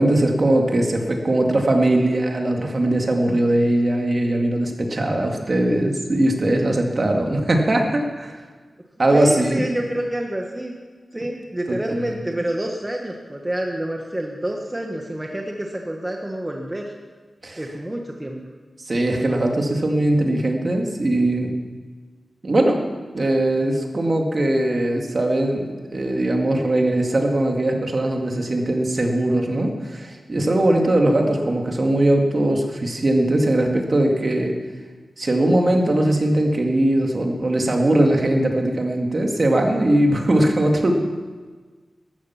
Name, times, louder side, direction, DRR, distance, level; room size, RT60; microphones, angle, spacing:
voice 1, 0.0-8.4 9.0-9.6 11.7-12.1 17.4-17.6 18.9-21.5 22.4-34.5 35.2-40.9, right 1 dB, 40° right, 2 dB, 2.0 m, -20 dB
voice 2, 9.1-10.7 11.1-16.9 17.6-18.4, right 1 dB, 15° right, 1 dB, 1.3 m, -28 dB
13.5 x 13.0 x 5.8 m, 1.4 s
wide cardioid pair, 110°, 0 cm